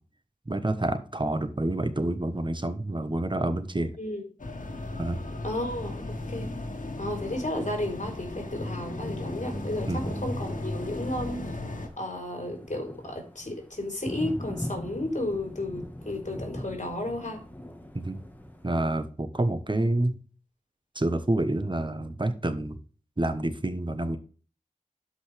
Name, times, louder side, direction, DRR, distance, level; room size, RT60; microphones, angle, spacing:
voice 1, 0.5-3.9 5.0-5.2 9.9-10.0 17.9-18.2 18.6-20.2 20.9-22.8 23.2-24.2, right 1 dB, 35° right, 10 dB, 1.2 m, -28 dB
sound 1, 4.4-11.9, left 2 dB, 80° left, 1.8 m, -35 dB
voice 2, 5.4-6.0 6.3-6.5 7.0-11.4 12.0-17.4, left 1 dB, 60° left, 2 dB, 3.9 m, -33 dB
Thunder, 9.4-19.0, left 1 dB, 15° left, 1.6 m, -42 dB
12.0 x 5.3 x 3.4 m, 0.38 s
wide cardioid pair, 50°, 14 cm